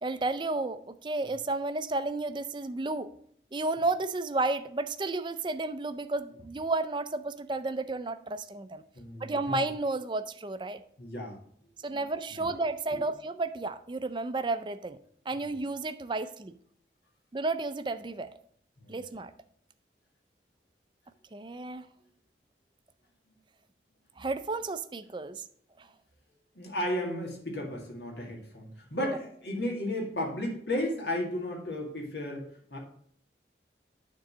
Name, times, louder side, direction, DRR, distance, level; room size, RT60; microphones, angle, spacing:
voice 1, 0.0-3.1 3.5-8.8 9.2-10.8 11.8-15.0 15.3-16.5 17.3-18.3 18.9-19.3 21.3-21.8 24.2-25.4 25.8-25.9 29.0-29.2, right 2 dB, 25° right, 11 dB, 0.4 m, -32 dB
voice 2, 8.9-9.6 11.0-11.4 11.9-12.0 12.3-12.5 12.9-13.0 18.8-19.0 26.6-32.8, left 1 dB, 75° left, 1 dB, 2.1 m, -34 dB
9.3 x 3.8 x 6.1 m, 0.64 s
head